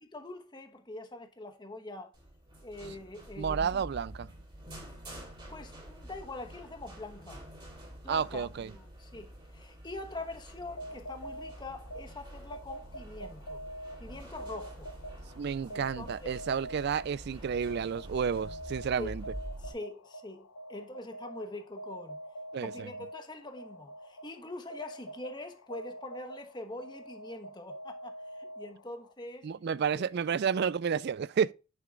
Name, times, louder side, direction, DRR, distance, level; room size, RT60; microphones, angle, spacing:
voice 1, 0.0-2.1 2.6-3.8 5.5-7.5 8.0-13.6 14.0-14.9 15.7-16.4 19.0-19.1 19.6-22.2 22.6-29.5 30.0-30.2, left 2 dB, 20° left, 1.1 m, -44 dB
sound 1, 2.1-19.7, right 1 dB, 25° right, 3.7 m, -47 dB
voice 2, 3.4-4.3 8.1-8.7 15.4-19.2 22.5-22.9 29.4-31.5, right 7 dB, 50° right, 0.3 m, -31 dB
sound 2, 10.6-29.1, right 1 dB, 85° left, 0.9 m, -46 dB
9.2 x 6.8 x 2.4 m
head